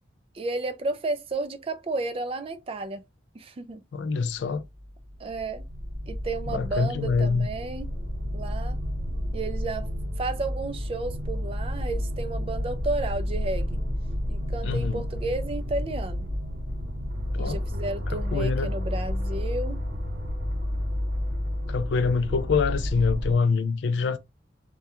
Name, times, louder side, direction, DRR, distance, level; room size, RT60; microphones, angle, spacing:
voice 1, 0.3-3.0 3.3-3.8 5.2-5.7 6.1-7.9 8.3-8.8 9.3-9.9 10.2-13.8 14.3-16.3 17.4-19.8, right 2 dB, 30° right, 0.3 m, -32 dB
voice 2, 3.9-4.6 6.5-7.5 14.6-15.0 17.3-17.6 18.1-18.7 21.7-24.2, left 4 dB, 65° left, 0.3 m, -25 dB
sound 1, 4.6-23.4, equal, 50° right, 0.9 m, -31 dB
2.2 x 2.2 x 2.8 m
head